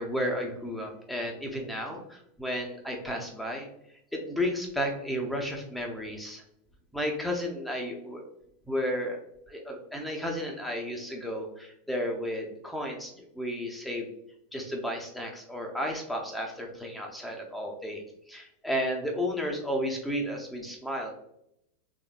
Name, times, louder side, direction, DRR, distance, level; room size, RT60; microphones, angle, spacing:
voice 1, 0.0-3.7 4.1-6.4 6.9-8.2 8.7-9.2 9.5-14.1 14.5-18.0 18.3-21.2, equal, 5° left, 1 dB, 0.8 m, -33 dB
3.7 x 3.6 x 2.5 m, 0.77 s
figure-of-eight pair, 90°, 0 cm